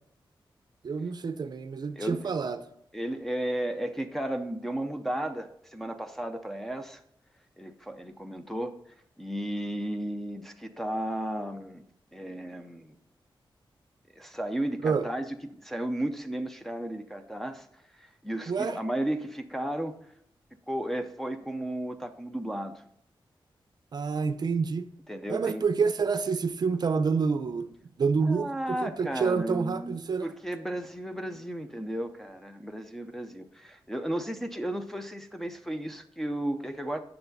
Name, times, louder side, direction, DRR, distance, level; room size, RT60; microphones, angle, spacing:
voice 1, 0.8-2.6 14.8-15.1 18.5-18.8 23.9-24.9 25.3-30.3, right 5 dB, 50° right, 0.6 m, -28 dB
voice 2, 2.0-2.3 2.9-7.0 7.6-8.7 9.2-11.8 12.1-12.9 14.2-15.3 15.5-17.7 17.9-19.9 20.7-22.8 25.1-25.6 28.2-30.0 30.2-37.0, right 1 dB, 5° left, 0.6 m, -34 dB
9.4 x 6.6 x 4.0 m
wide cardioid pair, 150°, 9 cm